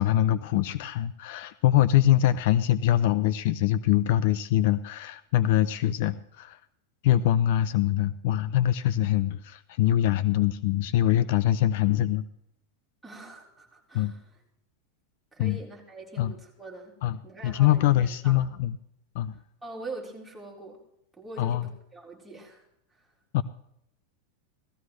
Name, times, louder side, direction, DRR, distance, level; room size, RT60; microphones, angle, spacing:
voice 1, 0.0-6.6 7.0-12.2 13.9-14.1 15.4-15.6 16.2-16.3 17.0-17.2 17.4-18.8 19.1-19.4 21.4-21.7 23.3-23.4, left 12 dB, 60° left, 16 dB, 0.6 m, -23 dB
voice 2, 13.0-14.2 15.3-17.0 17.2-18.4 19.6-20.8 21.2-22.7 22.9-23.1, right 2 dB, 5° right, -4 dB, 4.1 m, -43 dB
17.5 x 14.5 x 3.3 m, 0.76 s
supercardioid pair, 155°, 0 cm